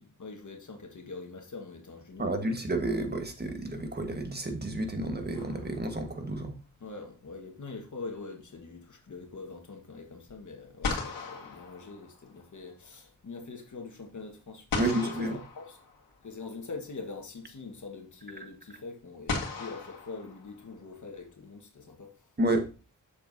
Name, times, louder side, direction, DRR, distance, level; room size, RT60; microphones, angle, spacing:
voice 1, 0.0-2.6 6.8-15.8 16.2-22.1, left 3 dB, 60° left, 1.5 m, -43 dB
voice 2, 2.2-6.5 14.8-15.4 22.4-22.7, right 1 dB, 30° right, 1.5 m, -30 dB
sound 1, 5.3-6.2 10.3-10.4 10.8-12.5 14.7-16.3 17.6-17.7 19.3-20.9, left 4 dB, 85° left, 1.9 m, -37 dB
7.0 x 7.0 x 2.7 m
cardioid pair, 60°, 33 cm